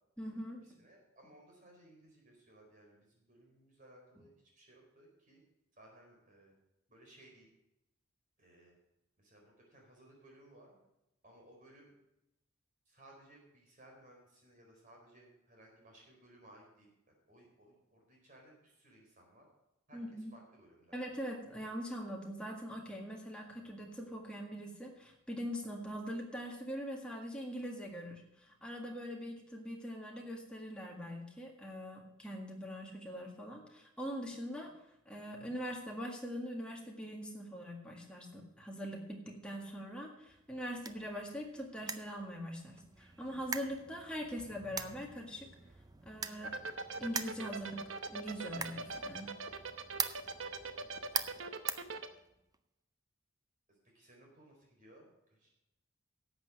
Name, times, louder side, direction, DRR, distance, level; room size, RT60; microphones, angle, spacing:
voice 1, 0.2-0.6 19.9-20.3 20.9-34.7 35.0-45.5 46.0-46.5 47.0-47.8 48.1-49.3, equal, 5° left, -1 dB, 1.8 m, -42 dB
voice 2, 0.8-5.4 5.8-6.5 6.9-7.5 8.4-8.8 9.2-10.8 11.2-11.9 12.9-16.9 17.3-19.4 19.9-21.0 53.7-55.5, right 1 dB, 40° right, 0 dB, 4.5 m, -61 dB
sound 1, 40.3-52.6, right 6 dB, 20° right, 0.5 m, -44 dB
sound 2, 46.4-52.1, right 3 dB, 70° right, 0.9 m, -40 dB
11.0 x 7.9 x 6.5 m, 0.86 s
head